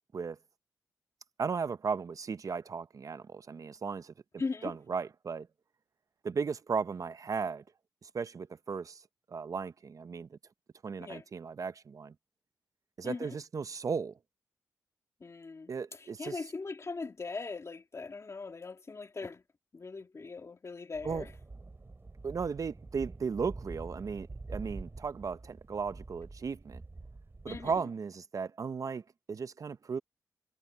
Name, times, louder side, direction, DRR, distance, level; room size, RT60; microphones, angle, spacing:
voice 1, 1.4-4.1 4.6-5.5 6.2-7.6 8.0-9.0 9.3-10.4 10.8-12.1 13.0-14.1 15.7-16.4 21.0-21.3 22.2-26.8 27.4-29.0 29.3-30.0, right 5 dB, 55° right, 0.7 m, -36 dB
voice 2, 4.4-4.7 11.0-11.2 13.0-13.4 15.2-19.4 19.7-21.3 27.5-27.8, left 4 dB, 45° left, 2.4 m, -40 dB
sound 1, 20.9-27.8, right 3 dB, 35° right, 4.4 m, -46 dB
cardioid pair, 50°, 7 cm